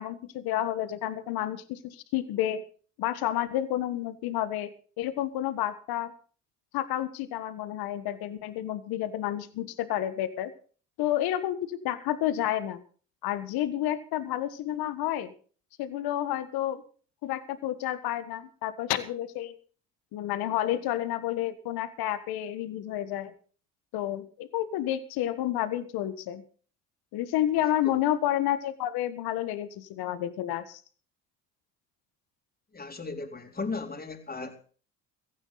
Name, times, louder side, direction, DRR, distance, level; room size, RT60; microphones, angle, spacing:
voice 1, 0.0-2.6 3.0-4.7 5.0-6.1 6.7-10.5 11.0-12.8 13.2-15.3 15.8-16.8 17.2-19.5 20.1-23.3 23.9-26.4 27.1-30.8, left 12 dB, 70° left, 12 dB, 1.6 m, -30 dB
voice 2, 32.7-34.6, left 4 dB, 25° left, 4 dB, 3.8 m, -36 dB
16.0 x 15.0 x 4.1 m, 0.40 s
hypercardioid pair, 60°, 39 cm